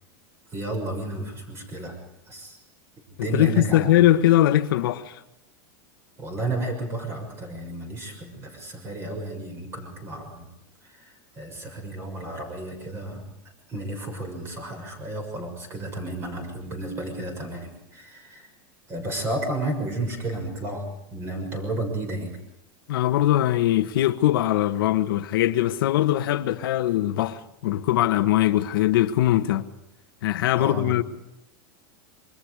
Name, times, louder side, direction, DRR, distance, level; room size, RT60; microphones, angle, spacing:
voice 1, 0.5-2.0 2.3-2.6 3.2-4.2 6.2-10.5 10.8-13.2 13.7-18.5 18.9-22.4 30.6-30.9, right 2 dB, 20° right, 6.6 m, -32 dB
voice 2, 3.3-5.2 22.9-29.7 30.2-31.0, left 13 dB, 80° left, 1.6 m, -21 dB
27.5 x 24.0 x 5.0 m
supercardioid pair, 155°, 12 cm